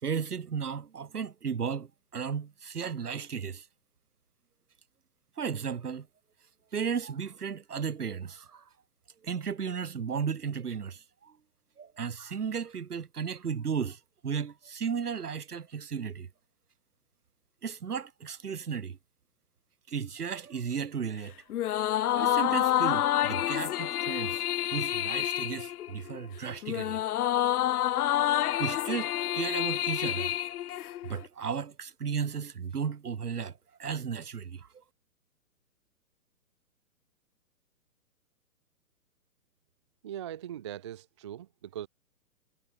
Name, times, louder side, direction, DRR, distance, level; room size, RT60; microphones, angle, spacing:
voice 1, 0.0-3.7 5.4-6.1 6.7-8.7 9.2-11.4 11.8-16.3 17.6-19.0 19.9-21.4 22.1-24.4 24.7-27.0 28.6-30.4 31.0-34.8, right 6 dB, 75° right, 3.0 m, -35 dB
sound 1, 21.5-31.2, left 12 dB, 75° left, 0.5 m, -28 dB
voice 2, 40.0-41.9, right 11 dB, 20° right, 0.4 m, -40 dB
hypercardioid pair, 130°, 46 cm